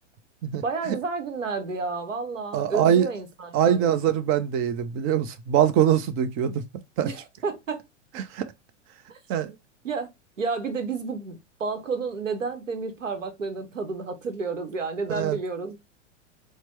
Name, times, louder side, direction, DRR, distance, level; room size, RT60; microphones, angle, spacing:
voice 1, 0.6-4.0 7.0-7.8 9.1-9.2 9.8-10.1 10.4-15.8, right 4 dB, 90° right, 0.9 m, -31 dB
voice 2, 2.5-3.1 3.5-6.6 7.0-7.1 8.2-8.5 9.3-9.5 15.1-15.4, right 9 dB, 35° right, 0.6 m, -23 dB
4.3 x 2.1 x 3.0 m
hypercardioid pair, 100°, 37 cm